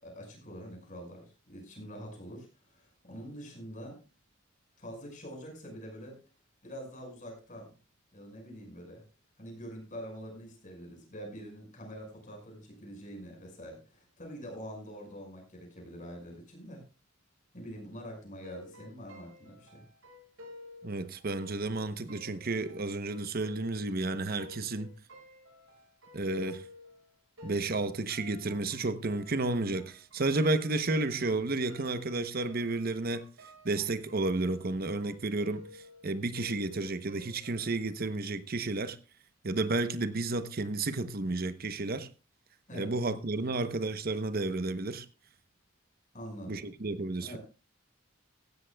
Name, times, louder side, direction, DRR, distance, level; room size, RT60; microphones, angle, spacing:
voice 1, 0.0-4.0 4.8-6.2 6.6-7.7 8.1-9.0 9.4-16.8 17.5-19.8 42.7-42.9 46.1-46.7 47.2-47.4, equal, 40° left, 5.7 m, -45 dB
sound 1, 18.4-27.1 27.4-38.1, left 2 dB, 85° right, 7.7 m, -53 dB
voice 2, 20.8-24.9 26.1-26.7 27.4-33.3 33.6-39.0 39.4-42.1 42.7-45.1 46.5-47.4, right 2 dB, 45° right, 0.9 m, -32 dB
16.5 x 13.0 x 2.3 m
head